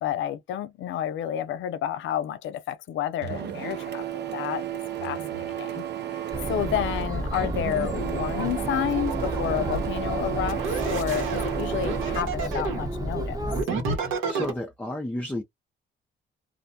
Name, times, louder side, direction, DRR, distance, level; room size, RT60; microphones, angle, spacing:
voice 1, 0.0-4.6 5.0-5.8 6.5-10.6 10.9-13.4, left 10 dB, 75° left, 0.5 m, -30 dB
Printer, 3.2-12.2, right 11 dB, 60° right, 0.6 m, -32 dB
Chatter, 6.3-13.6, right 1 dB, 20° right, 0.9 m, -32 dB
sound 1, 8.9-9.8 10.5-12.9 13.5-14.5, right 4 dB, 85° right, 1.3 m, -30 dB
voice 2, 14.0-15.4, left 1 dB, 5° left, 0.5 m, -32 dB
2.5 x 2.1 x 2.7 m
cardioid pair, 90°, 20 cm